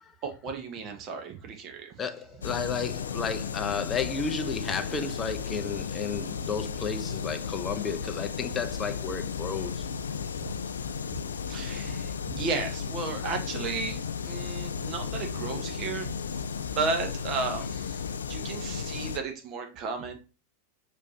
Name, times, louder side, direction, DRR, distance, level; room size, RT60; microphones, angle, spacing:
voice 1, 0.2-1.9 11.1-11.2 11.5-14.0 14.2-16.1 16.6-18.0 18.3-20.2, right 4 dB, 35° right, 0.9 m, -34 dB
voice 2, 2.0-9.9, left 5 dB, 20° left, 0.6 m, -32 dB
sound 1, 2.4-19.2, left 6 dB, 70° left, 0.3 m, -34 dB
6.3 x 3.0 x 2.7 m
figure-of-eight pair, 90°, 0 cm